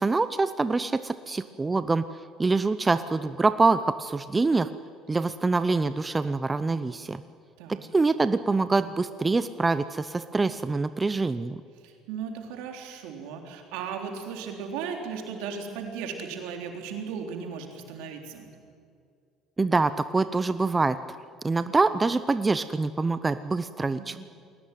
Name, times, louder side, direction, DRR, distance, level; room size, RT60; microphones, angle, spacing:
voice 1, 0.0-2.1 2.4-4.7 5.1-7.2 7.7-11.6 19.6-21.2 21.4-24.2, right 3 dB, 20° right, 13 dB, 0.8 m, -25 dB
voice 2, 11.8-18.5 24.0-24.2, right 6 dB, 80° right, 3 dB, 3.6 m, -36 dB
21.0 x 18.0 x 9.3 m, 2.3 s
supercardioid pair, 85°, 0 cm